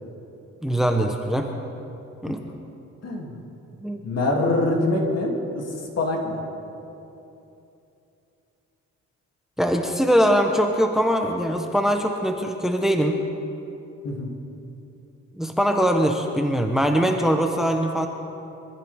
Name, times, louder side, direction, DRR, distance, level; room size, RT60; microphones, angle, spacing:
voice 1, 0.6-1.5 2.2-2.4 3.8-4.0 9.6-13.2 15.3-18.1, equal, ahead, 4 dB, 1.1 m, -22 dB
voice 2, 3.0-3.4 4.0-6.4 14.0-14.4, left 2 dB, 55° left, 0 dB, 2.9 m, -24 dB
24.0 x 14.5 x 3.6 m, 2.9 s
cardioid pair, 90°, 30 cm